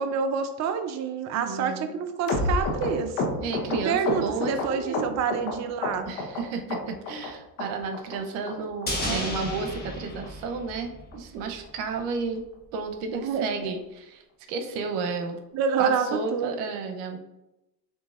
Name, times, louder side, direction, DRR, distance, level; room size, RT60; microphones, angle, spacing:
voice 1, 0.0-3.2 3.9-6.1 9.0-9.3 13.1-13.7 15.5-16.5, right 6 dB, 35° right, 8 dB, 0.4 m, -28 dB
voice 2, 1.4-1.9 3.4-5.1 6.1-12.4 12.7-14.2 14.5-15.4 15.8-17.2, right 4 dB, 80° right, 5 dB, 0.8 m, -32 dB
sound 1, 2.3-5.5 5.8-6.4 6.7-7.3 7.6-7.7 7.9-8.2 8.5-8.6 8.8-9.0 9.3-9.4 9.7-9.9 10.2-10.3 10.6-10.8 11.1-11.2 11.5-11.7 12.0-12.1, left 3 dB, 80° left, 1.2 m, -29 dB
sound 2, 8.9-11.3 11.5-11.6, left 1 dB, 20° left, 1.2 m, -33 dB
6.8 x 2.7 x 2.4 m, 0.94 s
supercardioid pair, 75°, 50 cm